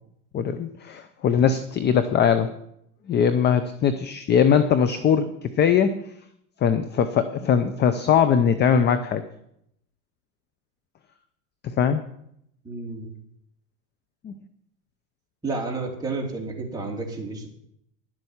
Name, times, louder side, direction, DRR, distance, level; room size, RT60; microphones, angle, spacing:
voice 1, 0.3-2.5 3.1-6.0 6.6-9.2 11.6-12.0 14.2-14.3, left 7 dB, 25° left, 11 dB, 0.6 m, -21 dB
voice 2, 12.6-13.1 15.4-17.5, right 3 dB, 10° right, -2 dB, 3.0 m, -31 dB
11.5 x 7.9 x 7.1 m, 0.74 s
supercardioid pair, 130°, 47 cm